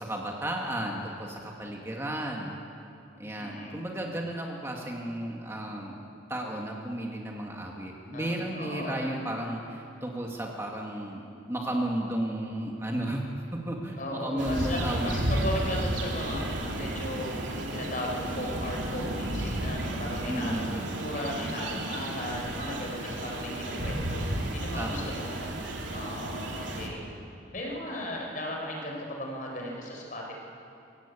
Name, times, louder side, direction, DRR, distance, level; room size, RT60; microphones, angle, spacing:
voice 1, 0.0-2.5 3.2-6.0 6.3-13.2 13.5-15.5 20.3-20.9 24.7-25.1, right 1 dB, 15° right, -1 dB, 2.0 m, -33 dB
voice 2, 3.3-3.8 8.1-9.0 14.0-16.5 16.7-17.3 17.7-27.1 27.5-30.3, equal, 45° left, -1 dB, 4.8 m, -36 dB
sound 1, 14.4-26.9, right 1 dB, 80° right, 2.9 m, -33 dB
24.0 x 16.0 x 8.6 m, 2.7 s
head